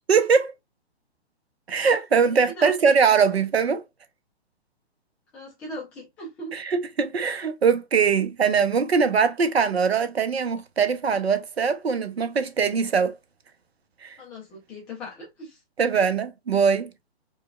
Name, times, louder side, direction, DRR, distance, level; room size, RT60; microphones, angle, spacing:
voice 1, 0.1-0.5 1.7-3.8 6.5-13.2 14.0-14.2 15.8-16.9, right 6 dB, 70° right, 0.8 m, -22 dB
voice 2, 2.2-2.9 5.3-6.5 14.2-15.6, equal, 5° left, 0.3 m, -38 dB
4.5 x 2.3 x 2.2 m
figure-of-eight pair, 125°, 33 cm